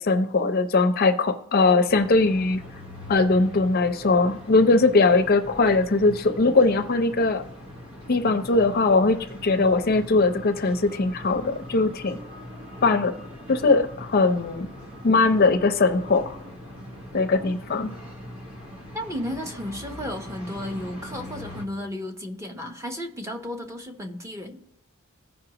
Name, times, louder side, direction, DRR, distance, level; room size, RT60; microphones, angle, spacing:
voice 1, 0.0-2.6 3.1-7.4 8.1-12.2 12.8-13.1 13.5-14.7 15.0-16.4 17.1-17.9, left 3 dB, 45° left, 8 dB, 0.5 m, -20 dB
sound 1, 1.9-21.7, left 1 dB, 80° right, 1.4 m, -41 dB
voice 2, 18.9-24.6, left 1 dB, 15° right, 4 dB, 0.9 m, -33 dB
16.0 x 5.4 x 2.9 m, 0.80 s
head